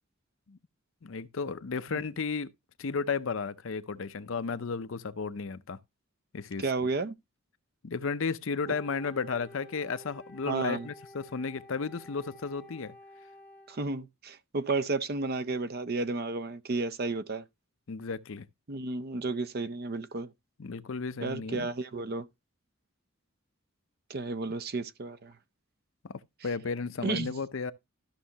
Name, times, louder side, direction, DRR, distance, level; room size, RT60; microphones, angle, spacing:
voice 1, 1.0-2.5 2.8-5.8 6.3-6.6 7.8-12.9 17.9-18.5 20.6-21.7 26.0-27.7, left 5 dB, 65° left, 0.6 m, -34 dB
voice 2, 6.6-7.1 10.5-10.9 13.7-17.4 18.7-20.3 21.2-22.3 24.1-25.4 27.0-27.3, right 3 dB, 45° right, 0.6 m, -32 dB
Wind instrument woodwind instrument, 8.6-13.8, left 1 dB, 10° left, 0.7 m, -51 dB
13.0 x 6.3 x 2.8 m
head